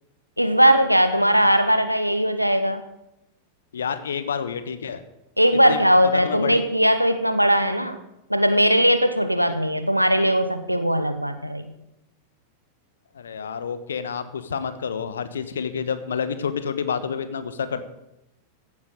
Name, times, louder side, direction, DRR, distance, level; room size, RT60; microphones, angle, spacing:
voice 1, 0.4-2.8 5.4-8.0 8.3-11.7, equal, 90° right, 9 dB, 1.0 m, -19 dB
voice 2, 3.7-5.0 5.7-6.6 13.1-17.8, left 6 dB, 65° left, 12 dB, 1.2 m, -29 dB
16.0 x 8.7 x 6.9 m, 0.87 s
figure-of-eight pair, 90°, 0 cm